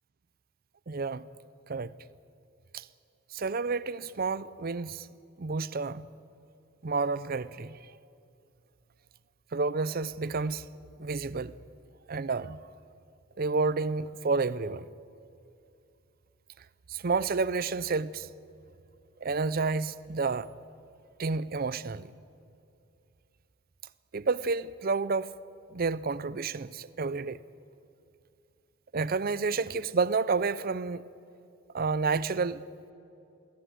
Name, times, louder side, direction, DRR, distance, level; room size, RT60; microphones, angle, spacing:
voice 1, 0.9-1.3 1.7-1.9 2.7-2.9 3.3-5.1 5.4-6.1 6.8-7.8 9.5-10.7 11.0-11.5 12.1-12.6 13.4-14.9 16.9-18.3 19.2-20.5 21.2-22.1 24.1-25.3 25.7-27.4 28.9-31.0 31.7-32.6, right 4 dB, 45° right, 0.5 m, -30 dB
21.0 x 17.5 x 9.3 m
head